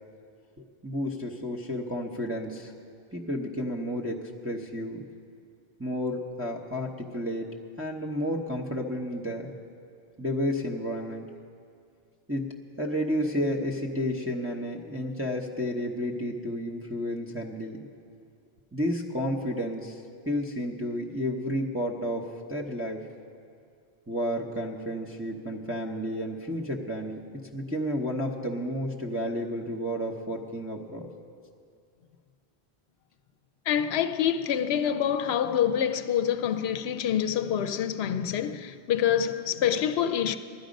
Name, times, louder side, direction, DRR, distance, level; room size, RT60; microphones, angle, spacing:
voice 1, 0.6-2.7 3.1-5.0 5.8-7.5 7.8-9.5 10.2-11.2 12.3-12.5 12.8-17.9 18.7-20.0 20.3-22.2 22.5-23.0 24.1-27.2 27.5-31.1, equal, 15° right, 0.9 m, -31 dB
voice 2, 33.7-40.4, left 9 dB, 75° left, 0.8 m, -26 dB
16.0 x 12.5 x 5.2 m
omnidirectional pair, 1.1 m